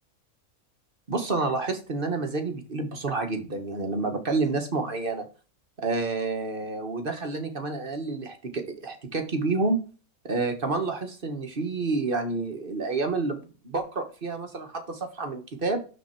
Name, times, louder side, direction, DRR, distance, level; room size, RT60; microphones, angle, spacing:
voice 1, 1.1-5.3 5.8-9.8 10.2-15.8, right 3 dB, 40° right, 6 dB, 1.4 m, -29 dB
12.5 x 4.2 x 4.4 m, 0.36 s
omnidirectional pair, 1.5 m